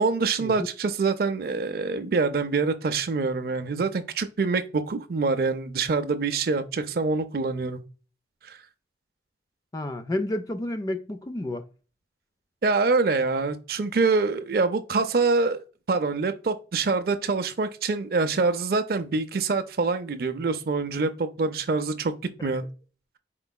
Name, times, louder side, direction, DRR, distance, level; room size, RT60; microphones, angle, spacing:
voice 1, 0.0-7.8 8.4-8.6 12.6-15.6 15.9-22.6, right 4 dB, 55° right, 0.4 m, -25 dB
voice 2, 9.7-11.7, left 1 dB, 20° left, 0.4 m, -30 dB
4.4 x 3.9 x 2.2 m
head